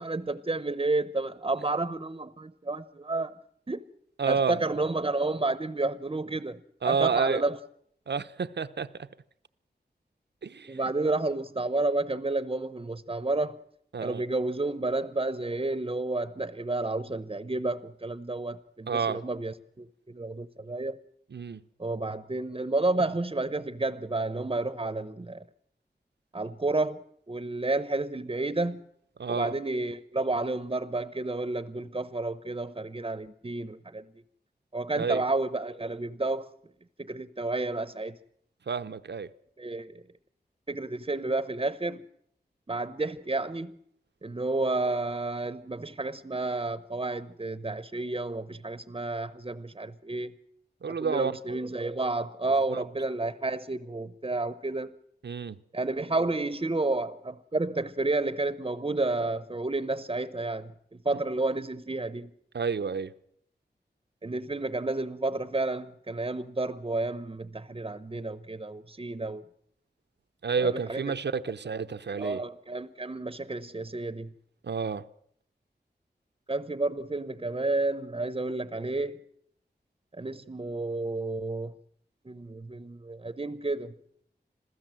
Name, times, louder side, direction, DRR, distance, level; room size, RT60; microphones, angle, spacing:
voice 1, 0.0-3.3 3.7-3.8 4.3-7.6 10.7-13.6 14.0-21.0 21.8-25.4 26.3-28.8 29.3-34.1 34.7-36.5 37.0-38.2 39.6-40.0 40.7-42.0 42.7-43.7 44.2-50.3 51.0-55.0 55.7-62.3 64.2-69.4 70.6-71.0 72.1-74.3 76.5-79.2 80.2-81.7 82.2-83.9, right 2 dB, 30° right, 0.8 m, -31 dB
voice 2, 4.2-4.6 6.8-7.4 8.1-9.1 10.4-10.8 13.9-14.2 18.9-19.2 21.3-21.6 29.2-29.5 35.0-35.2 38.7-39.3 50.8-51.3 52.7-52.8 55.2-55.6 62.5-63.1 70.4-72.4 74.6-75.1, right 5 dB, 85° right, 0.9 m, -30 dB
26.5 x 16.0 x 7.7 m
wide cardioid pair, 85°, 17 cm